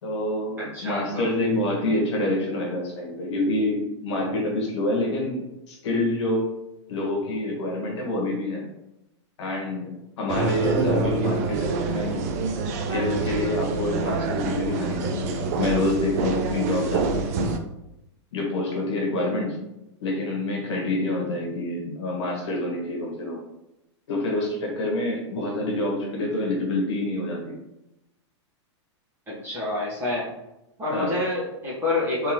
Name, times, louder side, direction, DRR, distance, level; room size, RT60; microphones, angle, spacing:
voice 1, 0.0-6.4 6.9-8.7 9.4-12.2 12.9-17.4 18.3-19.6 20.0-23.4 24.1-27.6 30.9-31.3, left 1 dB, 70° left, -1 dB, 1.4 m, -27 dB
voice 2, 0.6-1.3 29.3-30.3 30.8-32.3, left 2 dB, 15° right, -8 dB, 1.4 m, -28 dB
sound 1, 10.3-17.6, right 4 dB, 35° right, 0.4 m, -26 dB
3.8 x 3.3 x 3.1 m, 0.92 s
supercardioid pair, 170°, 15 cm